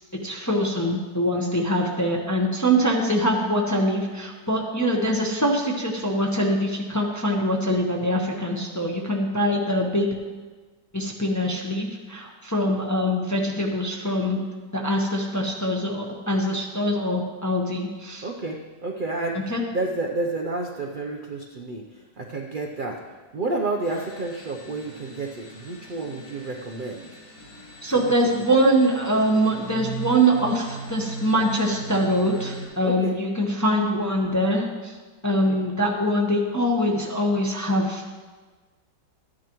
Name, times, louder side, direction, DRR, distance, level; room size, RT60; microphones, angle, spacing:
voice 1, 0.2-10.1 10.9-14.4 14.7-18.3 19.5-19.6 27.8-34.9 35.2-38.1, equal, 15° left, -1 dB, 0.7 m, -23 dB
voice 2, 18.2-23.0 23.3-27.1 27.9-28.1 32.8-33.2 35.3-35.6, right 3 dB, 65° right, 0 dB, 0.5 m, -30 dB
sound 1, 23.8-32.7, right 3 dB, 60° left, 4.8 m, -39 dB
13.5 x 9.9 x 3.0 m, 1.4 s
omnidirectional pair, 2.0 m